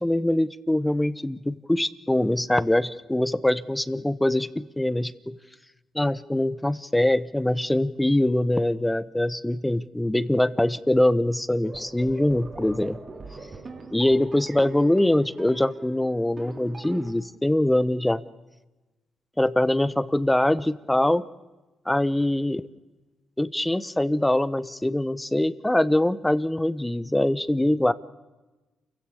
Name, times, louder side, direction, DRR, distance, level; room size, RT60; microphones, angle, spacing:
voice 1, 0.0-5.4 5.9-13.0 13.9-18.2 19.4-21.2 21.9-22.7 23.4-27.9, left 1 dB, 10° left, 17 dB, 0.9 m, -23 dB
sound 1, 11.6-17.1, right 3 dB, 40° right, 3.1 m, -42 dB
28.5 x 16.0 x 6.9 m, 1.1 s
cardioid pair, 80°, 0 cm